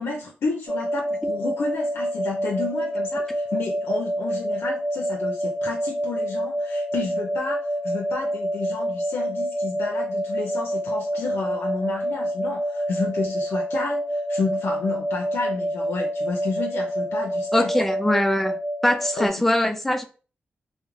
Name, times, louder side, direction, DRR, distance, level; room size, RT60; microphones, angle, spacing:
voice 1, 0.0-7.6 7.8-17.7 19.2-19.3, left 3 dB, 80° left, 0.4 m, -31 dB
sound 1, 0.7-19.3, equal, 60° right, 0.8 m, -27 dB
voice 2, 17.5-18.5 18.8-20.1, left 1 dB, 5° left, 0.4 m, -22 dB
2.4 x 2.0 x 3.0 m
cardioid pair, 85°, 4 cm